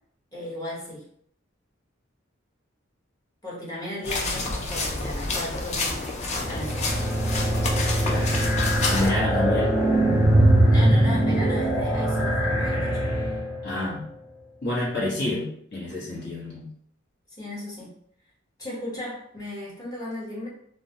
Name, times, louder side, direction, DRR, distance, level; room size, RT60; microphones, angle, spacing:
voice 1, 0.3-1.1 3.4-6.0 6.4-7.0 9.1-9.7 10.7-13.1 17.4-17.9 18.6-20.5, left 1 dB, 20° left, -7 dB, 0.9 m, -35 dB
sound 1, 4.0-9.1, left 3 dB, 35° left, 0.4 m, -29 dB
sound 2, 6.3-13.7, right 1 dB, 15° right, 0.7 m, -22 dB
voice 2, 8.9-9.7 13.6-14.0 14.6-16.7, left 2 dB, 60° left, -6 dB, 1.0 m, -28 dB
2.2 x 2.1 x 2.7 m, 0.66 s
head